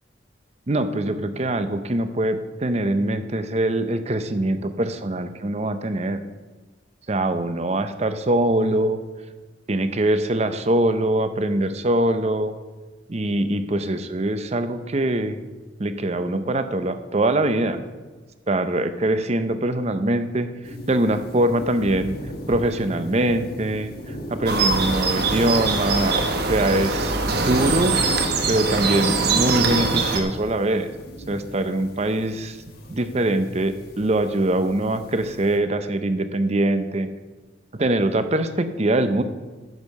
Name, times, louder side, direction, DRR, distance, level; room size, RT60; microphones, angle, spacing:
voice 1, 0.7-6.2 7.1-9.0 9.7-12.5 13.1-15.4 15.8-17.8 18.5-20.5 20.9-22.2 22.5-23.9 24.3-26.2 26.5-28.0 28.5-30.9 31.3-32.6 32.9-37.1 37.7-39.2, right 1 dB, 35° right, 10 dB, 0.7 m, -23 dB
sound 1, 20.6-35.6, equal, 55° left, 1.5 m, -39 dB
sound 2, 24.5-30.2, right 3 dB, 60° right, 1.2 m, -22 dB
11.0 x 7.4 x 5.3 m, 1.3 s
head